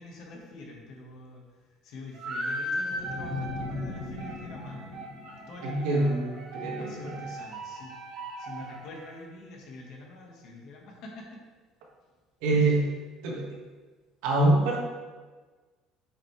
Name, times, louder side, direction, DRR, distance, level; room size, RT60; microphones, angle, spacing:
voice 1, 0.0-5.0 5.5-6.3 6.8-7.9 8.4-11.4 12.5-12.8, left 2 dB, 50° left, 0 dB, 1.5 m, -46 dB
sound 1, 2.1-9.2, right 1 dB, 50° right, 1.6 m, -38 dB
sound 2, 2.9-6.2, left 3 dB, 65° left, 1.4 m, -38 dB
voice 2, 5.6-7.2 12.4-12.8 13.2-13.6 14.2-14.8, right 2 dB, 75° right, -1 dB, 1.7 m, -25 dB
8.2 x 5.5 x 3.3 m, 1.3 s
cardioid pair, 175°, 0 cm